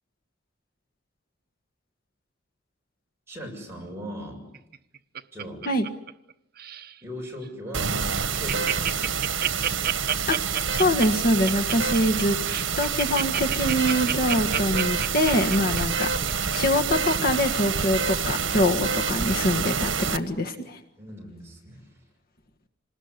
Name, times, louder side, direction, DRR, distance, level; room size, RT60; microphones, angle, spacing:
voice 1, 3.3-4.4 5.3-5.6 7.0-8.0 8.4-9.4 21.0-21.9, equal, 15° right, -1 dB, 7.1 m, -39 dB
Laughter, 4.5-6.3 6.6-6.9 7.4-7.5 7.8-7.9 8.1-16.6 17.0-17.1, right 9 dB, 50° right, 1.1 m, -29 dB
sound 1, 7.7-20.2, right 6 dB, 80° right, 1.5 m, -27 dB
voice 2, 10.7-12.4 12.8-16.1 16.5-20.8, left 1 dB, 50° left, 4 dB, 1.5 m, -24 dB
27.0 x 20.0 x 9.8 m, 0.85 s
head